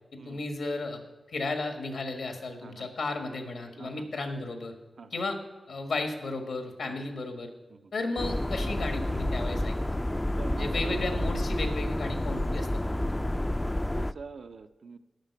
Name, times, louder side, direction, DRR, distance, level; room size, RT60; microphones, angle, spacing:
voice 1, 0.1-1.0 1.3-4.7 5.1-5.4 5.7-7.5 7.9-9.7 10.6-13.0, left 2 dB, 85° left, 5 dB, 1.6 m, -34 dB
voice 2, 2.6-2.9 3.8-4.2 5.0-5.2 6.8-7.1 7.7-7.9 10.4-11.0 13.6-15.0, right 4 dB, 75° right, 9 dB, 0.5 m, -45 dB
sound 1, 8.2-14.1, left 1 dB, 20° left, 0.3 m, -29 dB
9.0 x 5.9 x 8.2 m, 1.2 s
cardioid pair, 65°, 0 cm